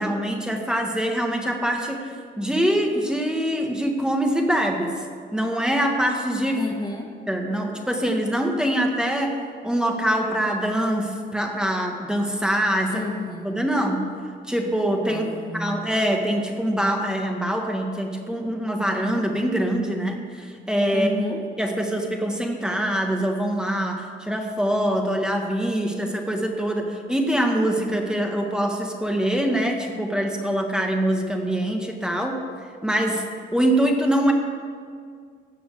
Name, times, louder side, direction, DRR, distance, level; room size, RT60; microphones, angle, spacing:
voice 1, 0.0-4.9 5.3-6.6 7.3-9.3 9.6-13.0 13.4-14.1 14.5-21.1 21.6-32.3 32.8-33.2 33.5-34.3, right 1 dB, 5° right, 2 dB, 1.6 m, -24 dB
voice 2, 6.5-7.1 12.9-13.9 15.1-15.8 20.9-21.5, left 2 dB, 20° left, 1 dB, 1.3 m, -31 dB
16.0 x 6.2 x 6.7 m, 2.1 s
cardioid pair, 90°, 20 cm